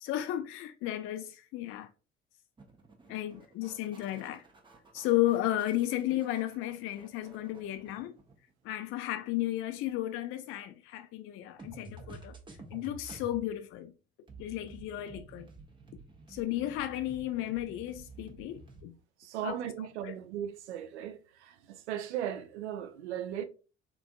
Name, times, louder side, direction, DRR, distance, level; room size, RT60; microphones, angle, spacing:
voice 1, 0.0-1.9 3.1-4.4 4.9-8.2 8.6-12.3 12.7-13.9 14.4-15.5 16.3-18.9 19.4-20.1, left 14 dB, 40° left, 0.4 m, -34 dB
sound 1, 2.6-8.5 11.6-13.4 14.3-18.8, right 3 dB, 15° right, 0.6 m, -51 dB
voice 2, 19.2-23.4, right 10 dB, 70° right, 0.5 m, -37 dB
3.7 x 2.5 x 2.3 m
figure-of-eight pair, 50°, 35 cm